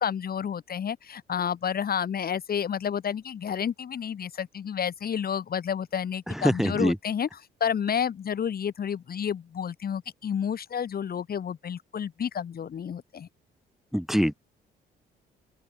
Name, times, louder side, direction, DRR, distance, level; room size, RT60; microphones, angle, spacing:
voice 1, 0.0-7.3 7.6-13.3, left 8 dB, 50° left, 1.2 m, -30 dB
voice 2, 6.3-7.0 13.9-14.3, equal, ahead, 1.0 m, -24 dB
open air
supercardioid pair, 55°, 20 cm